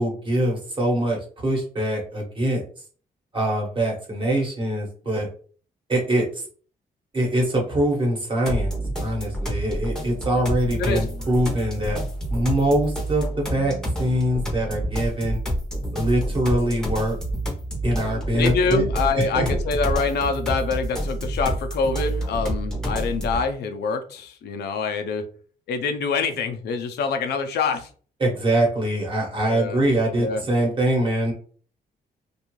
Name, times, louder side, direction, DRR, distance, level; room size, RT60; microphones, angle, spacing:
voice 1, 0.0-2.6 3.3-5.3 5.9-6.4 7.1-8.7 9.0-12.0 12.3-15.4 15.9-17.2 17.8-18.8 19.2-19.6 28.2-31.3, right 1 dB, 30° right, -1 dB, 1.0 m, -23 dB
sound 1, 8.5-23.5, right 1 dB, 5° left, 0.7 m, -28 dB
voice 2, 18.3-25.2 25.7-27.9 29.4-29.8 30.2-30.4, left 4 dB, 85° left, 7 dB, 0.5 m, -25 dB
2.6 x 2.3 x 3.0 m, 0.43 s
cardioid pair, 130°, 17 cm